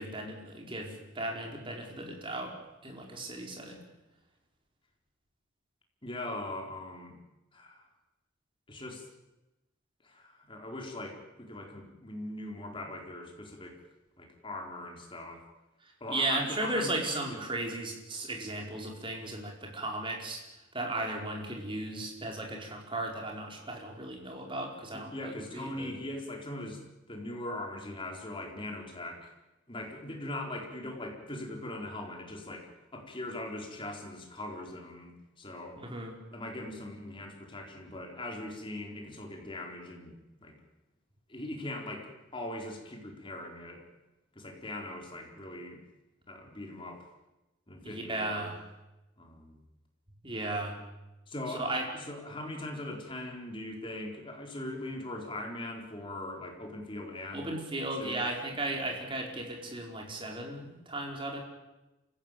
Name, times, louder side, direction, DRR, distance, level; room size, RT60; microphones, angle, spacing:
voice 1, 0.0-2.5 2.8-3.8 16.1-20.4 20.7-25.9 35.8-36.1 47.8-48.6 50.2-50.8 51.6-51.8 57.3-61.4, right 2 dB, 25° right, 0 dB, 5.0 m, -35 dB
voice 2, 6.0-7.2 7.5-7.9 8.7-9.1 10.0-13.8 14.2-15.4 16.0-16.9 17.3-17.4 24.9-26.8 27.1-29.3 29.7-35.8 36.3-40.6 41.3-43.9 44.3-45.8 46.3-47.1 47.7-48.5 49.2-49.6 51.3-57.5 58.0-58.2, left 1 dB, 25° left, 1 dB, 4.3 m, -41 dB
27.5 x 16.0 x 9.2 m, 1.0 s
head